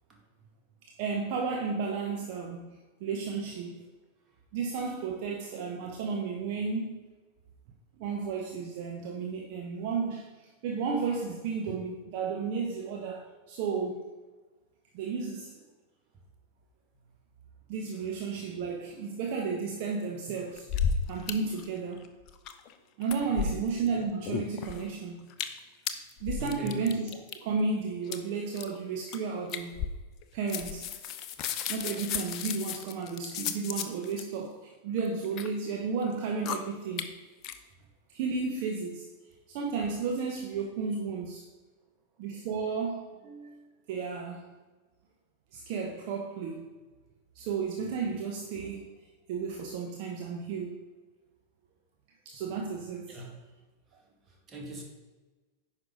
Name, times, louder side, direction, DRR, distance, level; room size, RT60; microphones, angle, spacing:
voice 1, 1.0-3.9 4.5-7.1 8.0-10.3 10.6-14.0 14.9-15.6 17.7-20.7 21.1-22.1 23.0-25.3 26.2-29.9 30.3-30.9 31.7-37.1 38.1-39.1 39.5-41.5 42.2-44.4 45.5-46.7 47.3-48.9 49.3-50.8 52.2-53.2, right 5 dB, 45° right, 1 dB, 0.9 m, -33 dB
sound 1, 20.6-21.3 21.6-21.7 22.0-22.7 23.0-23.9 24.3-24.9 25.3-25.6 25.9-27.4 28.1-28.2 28.6-28.8 29.1-29.2 29.5-30.2 30.5-34.2 35.0-35.5 36.0-36.2 36.5-36.6 37.0-37.1 37.4-37.5, left 7 dB, 40° left, 0.6 m, -33 dB
voice 2, 23.2-23.6 26.4-26.8 53.1-53.3 54.3-54.8, equal, 25° right, 0 dB, 2.0 m, -41 dB
9.5 x 5.7 x 3.9 m, 1.2 s
figure-of-eight pair, 90°, 0 cm